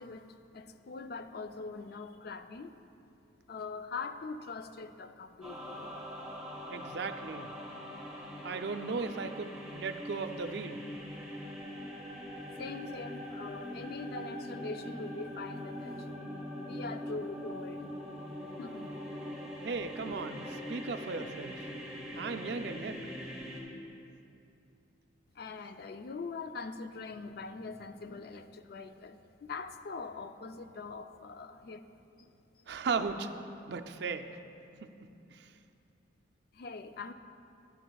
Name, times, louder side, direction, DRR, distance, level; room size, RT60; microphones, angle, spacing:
voice 1, 0.0-2.7 3.5-5.9 12.5-16.1 16.6-17.9 18.6-18.9 25.4-31.8 32.2-32.3 36.5-37.1, left 4 dB, 55° left, 9 dB, 0.3 m, -42 dB
sound 1, 5.4-23.6, equal, 5° right, 1.4 m, -42 dB
voice 2, 6.7-7.5 8.4-10.8 19.6-21.5 22.1-23.0 32.7-33.3 33.7-34.3, right 4 dB, 60° right, 7 dB, 0.4 m, -36 dB
12.0 x 11.0 x 2.3 m, 2.7 s
head